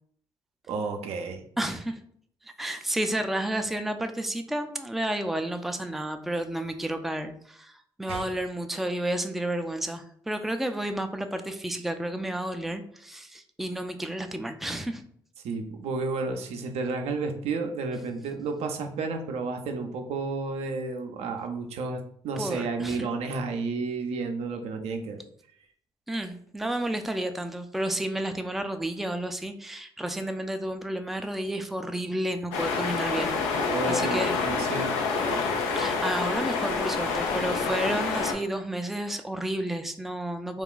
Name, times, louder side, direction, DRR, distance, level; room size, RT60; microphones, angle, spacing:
voice 1, 0.7-1.4 8.1-8.2 15.4-25.2 33.7-34.9, right 4 dB, 65° right, 5 dB, 0.5 m, -31 dB
voice 2, 1.6-2.0 2.6-15.0 22.4-23.1 26.1-34.3 35.7-40.6, right 1 dB, ahead, 7 dB, 0.4 m, -31 dB
sound 1, 32.5-38.3, left 4 dB, 80° left, 0.5 m, -27 dB
2.4 x 2.3 x 3.7 m, 0.64 s
hypercardioid pair, 45°, 11 cm